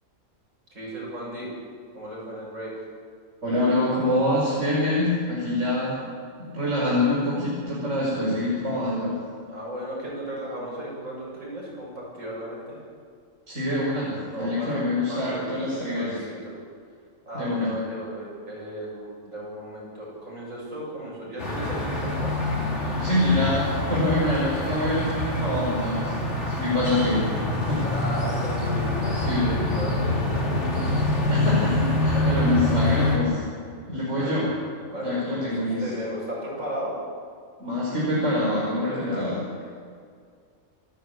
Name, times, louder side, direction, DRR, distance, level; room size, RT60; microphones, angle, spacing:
voice 1, 0.7-1.5 1.9-2.7 5.4-5.6 9.5-12.8 14.3-16.6 17.3-22.3 27.8-30.9 32.1-32.4 34.1-34.4 34.9-36.9 38.8-39.7, equal, 80° right, -4 dB, 8.4 m, -35 dB
voice 2, 3.4-6.0 6.5-9.1 13.5-16.2 17.3-17.7 23.0-26.2 26.5-27.3 27.7-27.8 29.1-29.5 31.3-33.4 33.9-34.5 35.0-35.9 37.6-39.4, left 1 dB, 65° right, -6 dB, 5.3 m, -25 dB
sound 1, 21.4-33.2, left 1 dB, 60° left, 3.9 m, -26 dB
27.5 x 14.0 x 8.4 m, 2.2 s
omnidirectional pair, 1.4 m